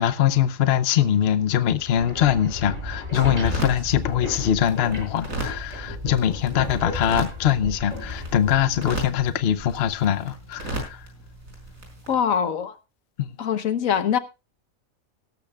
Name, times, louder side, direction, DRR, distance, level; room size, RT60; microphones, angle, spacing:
voice 1, 0.0-11.0 13.2-13.3, left 10 dB, 55° left, 0.9 m, -22 dB
sound 1, 1.7-9.7, left 2 dB, 25° right, 7.1 m, -34 dB
sound 2, 3.4-12.2, right 1 dB, 75° right, 5.5 m, -36 dB
voice 2, 12.1-12.8 13.4-14.2, left 8 dB, 75° left, 1.4 m, -23 dB
17.5 x 13.5 x 2.3 m
omnidirectional pair, 1.4 m